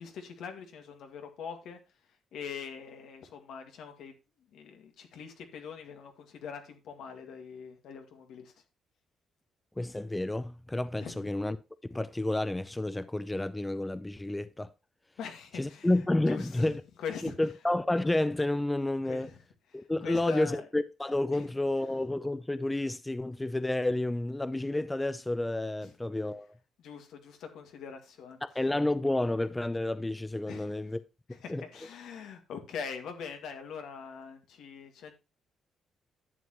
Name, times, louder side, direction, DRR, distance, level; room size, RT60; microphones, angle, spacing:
voice 1, 0.0-1.8 2.3-4.1 4.5-8.5 11.0-11.3 15.2-16.7 17.0-17.4 19.0-19.4 19.7-20.7 21.3-21.5 25.8-25.9 26.8-28.4 30.5-30.7 31.3-35.1, left 6 dB, 80° left, 2.0 m, -43 dB
voice 2, 9.8-11.6 11.8-14.7 15.5-16.8 17.2-19.3 19.7-26.5 28.4-31.0 31.5-31.6, left 1 dB, 10° left, 0.5 m, -30 dB
11.0 x 7.7 x 3.0 m
cardioid pair, 90°, 0 cm